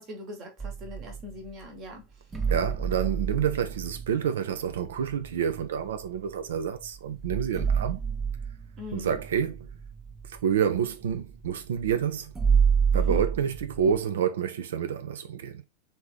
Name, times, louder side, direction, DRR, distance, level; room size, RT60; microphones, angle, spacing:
voice 1, 0.0-2.2 8.8-9.2 12.9-13.2, left 2 dB, 35° right, 1.2 m, -41 dB
sound 1, 0.6-1.5 2.3-6.3 6.8-6.9 7.1-14.0, right 6 dB, 15° right, 0.7 m, -29 dB
voice 2, 2.5-8.0 8.9-9.7 10.2-12.3 12.9-15.6, right 8 dB, 60° right, 0.4 m, -28 dB
3.2 x 2.7 x 3.2 m
figure-of-eight pair, 90°, 0 cm